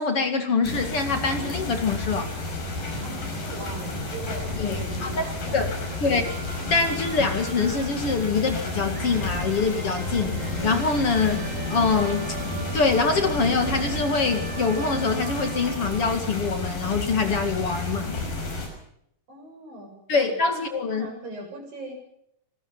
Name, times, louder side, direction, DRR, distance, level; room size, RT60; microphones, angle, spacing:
voice 1, 0.0-2.3 4.6-5.2 5.5-5.7 6.0-6.2 6.7-10.3 10.6-12.3 12.7-18.2 20.1-21.1, left 4 dB, 45° left, 6 dB, 2.8 m, -24 dB
sound 1, 0.6-18.7, left 2 dB, 80° left, 7.8 m, -31 dB
sound 2, 0.7-16.1, right 5 dB, 25° right, 2.3 m, -40 dB
voice 2, 3.0-5.7 6.0-6.2 19.3-21.9, right 2 dB, 80° right, 3 dB, 9.2 m, -40 dB
26.5 x 20.5 x 5.6 m, 0.74 s
omnidirectional pair, 4.0 m